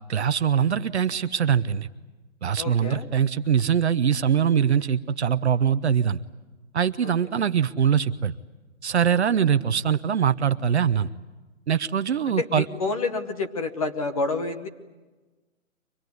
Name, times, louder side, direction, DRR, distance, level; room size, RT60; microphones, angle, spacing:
voice 1, 0.1-1.9 2.4-6.2 6.7-8.3 8.8-11.1 11.7-12.6, right 8 dB, 55° right, 12 dB, 0.8 m, -22 dB
voice 2, 2.6-3.1 7.0-7.1 9.1-9.2 12.2-14.7, left 3 dB, 25° left, 7 dB, 1.1 m, -29 dB
24.5 x 20.0 x 9.4 m, 1.2 s
hypercardioid pair, 175°, 40 cm